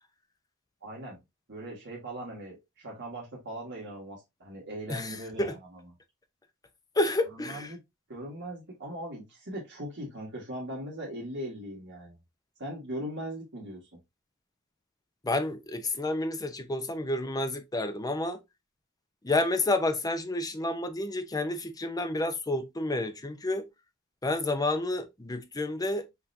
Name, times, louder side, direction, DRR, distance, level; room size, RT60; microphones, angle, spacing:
voice 1, 0.8-1.2 1.5-5.8 7.3-7.8 8.1-12.2 12.6-14.0, right 1 dB, 55° right, 1.7 m, -39 dB
voice 2, 4.9-5.5 7.0-7.7 15.2-18.4 19.2-23.6 24.2-26.1, left 2 dB, 15° left, 0.6 m, -30 dB
5.7 x 3.3 x 2.6 m
head